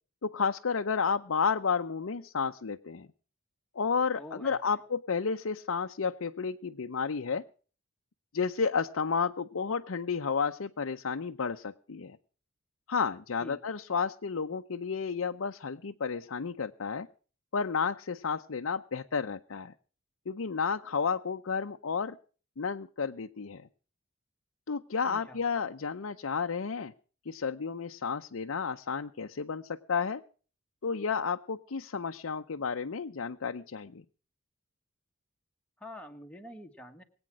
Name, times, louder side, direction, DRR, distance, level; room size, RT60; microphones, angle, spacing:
voice 1, 0.2-3.1 3.7-7.4 8.3-12.2 12.9-17.1 17.5-19.7 20.3-22.2 22.6-23.7 24.7-26.9 27.3-30.2 30.8-34.0, left 5 dB, 75° left, 5 dB, 0.6 m, -32 dB
voice 2, 4.1-4.8 13.4-13.6 25.0-25.4 35.8-37.0, left 1 dB, 5° left, 3 dB, 1.4 m, -46 dB
22.0 x 8.8 x 6.1 m, 0.41 s
head